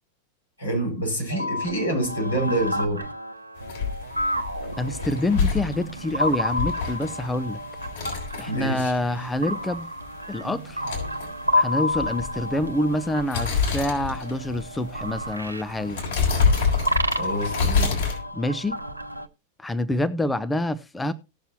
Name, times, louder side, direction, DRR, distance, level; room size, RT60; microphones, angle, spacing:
voice 1, 0.6-3.1 8.5-8.9 17.1-18.0, right 1 dB, 85° left, 6.2 m, -27 dB
sound 1, 1.3-19.3, left 1 dB, 85° right, 0.8 m, -31 dB
sound 2, 3.6-18.2, left 5 dB, 60° left, 6.4 m, -28 dB
voice 2, 4.8-7.6 8.4-9.9 10.3-10.8 11.5-16.0 18.3-18.8 19.6-21.1, left 1 dB, 10° left, 0.7 m, -26 dB
18.5 x 6.7 x 2.9 m
figure-of-eight pair, 90°, 0 cm